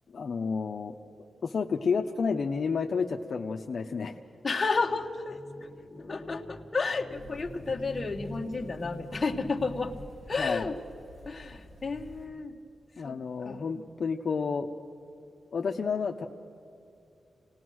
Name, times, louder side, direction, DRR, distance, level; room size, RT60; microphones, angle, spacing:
voice 1, 0.1-0.9 1.4-4.2 10.4-10.7 13.0-14.7 15.5-16.3, left 5 dB, 50° left, 3 dB, 0.7 m, -30 dB
voice 2, 4.4-10.0 10.3-10.8 11.2-12.6 13.0-13.7, left 4 dB, 25° left, 3 dB, 1.2 m, -32 dB
sound 1, 7.1-12.3, equal, 70° right, 5.3 m, -50 dB
27.5 x 18.5 x 6.3 m, 2.7 s
wide cardioid pair, 165°, 0 cm